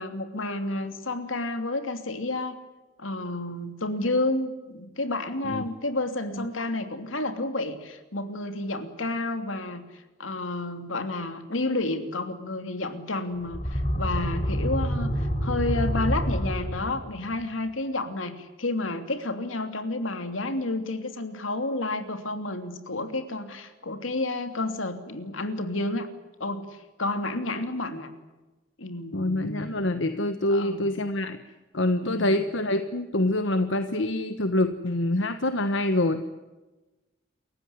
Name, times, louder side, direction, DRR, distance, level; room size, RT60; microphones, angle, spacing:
voice 1, 0.0-2.6 3.0-9.8 10.2-26.1 26.4-26.7 27.0-28.1 28.8-29.9 30.5-30.9 32.0-32.4, left 2 dB, 90° left, 8 dB, 2.9 m, -30 dB
sound 1, 13.4-17.2, equal, 35° left, 5.0 m, -27 dB
voice 2, 29.1-31.4 31.7-36.2, left 1 dB, 70° left, 9 dB, 1.3 m, -26 dB
28.5 x 15.5 x 9.7 m, 1.1 s
head